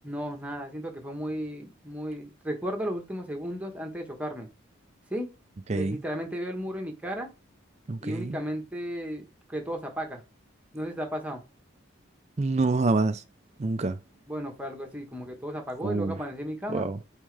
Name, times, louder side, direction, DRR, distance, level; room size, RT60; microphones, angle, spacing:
voice 1, 0.0-4.5 5.1-5.3 5.7-7.3 8.0-10.2 10.7-11.4 14.3-16.9, equal, 5° right, 1.2 m, -34 dB
voice 2, 7.9-8.4 12.4-13.2 13.6-14.0 15.8-16.2 16.7-17.0, right 3 dB, 30° right, 0.4 m, -26 dB
8.9 x 3.6 x 3.4 m
head